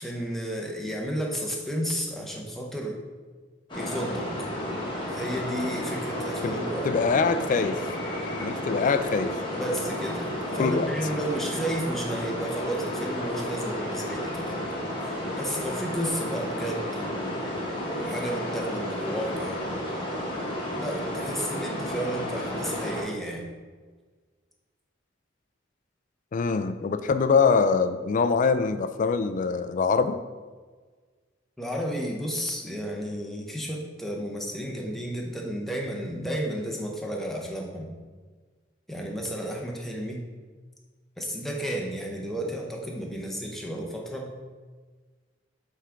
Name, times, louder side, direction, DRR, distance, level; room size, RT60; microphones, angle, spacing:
voice 1, 0.0-3.0 3.7-4.3 5.1-6.9 9.5-14.8 15.0-17.3 17.9-19.6 20.7-23.4 31.6-37.9 38.9-40.3 41.2-44.3, equal, ahead, -1 dB, 0.8 m, -32 dB
sound 1, 3.7-23.0, left 1 dB, 25° left, 1.3 m, -32 dB
voice 2, 6.8-7.8 8.4-9.3 10.6-10.9 26.3-30.2, left 5 dB, 45° left, 11 dB, 0.3 m, -23 dB
7.3 x 3.5 x 3.7 m, 1.4 s
head